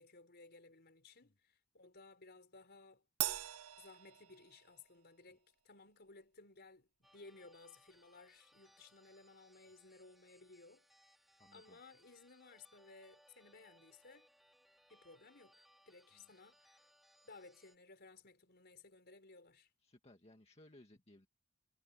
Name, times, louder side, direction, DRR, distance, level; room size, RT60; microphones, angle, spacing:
voice 1, 0.0-3.0 3.8-10.9 11.5-14.3 14.9-16.9 17.2-19.7, left 3 dB, 50° left, 4.8 m, -59 dB
Crash cymbal, 3.2-4.9, right 14 dB, 85° right, 0.7 m, -41 dB
sound 1, 7.0-17.8, equal, ahead, 3.3 m, -69 dB
voice 2, 11.4-11.8 16.1-16.2 19.8-21.3, left 1 dB, 30° left, 1.9 m, -62 dB
head